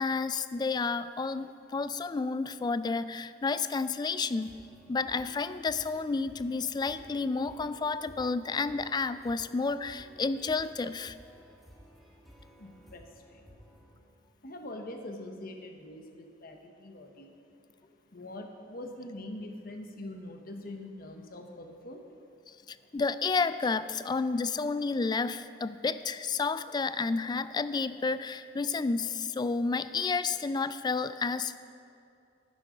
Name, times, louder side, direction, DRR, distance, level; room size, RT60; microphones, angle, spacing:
voice 1, 0.0-4.5 4.9-11.1 22.7-31.6, left 4 dB, 25° left, 14 dB, 0.3 m, -31 dB
sound 1, 4.3-14.0, equal, ahead, 1.6 m, -55 dB
voice 2, 12.6-13.0 13.3-13.4 14.4-17.3 18.1-22.0, left 1 dB, 55° left, 4 dB, 1.0 m, -43 dB
11.5 x 10.5 x 5.1 m, 2.5 s
head